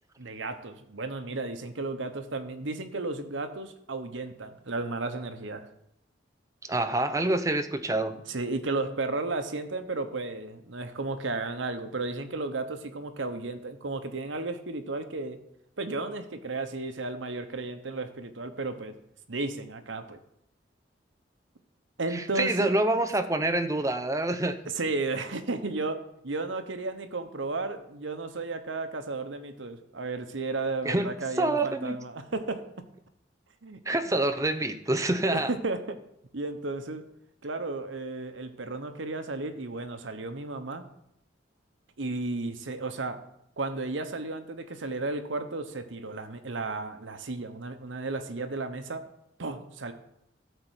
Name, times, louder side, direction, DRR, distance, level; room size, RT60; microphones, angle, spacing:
voice 1, 0.2-5.7 8.3-15.4 15.8-18.9 19.3-20.2 22.0-22.7 24.7-26.0 26.2-32.6 33.6-33.8 34.0-34.1 35.3-36.0 36.3-37.0 37.4-40.8 42.0-43.2 43.6-49.0 49.4-49.9, right 3 dB, 85° right, 8 dB, 1.1 m, -33 dB
voice 2, 6.7-8.1 22.1-24.6 30.8-31.1 31.4-32.0 33.9-35.5, right 2 dB, 15° right, 9 dB, 0.7 m, -26 dB
12.5 x 4.5 x 8.1 m, 0.78 s
head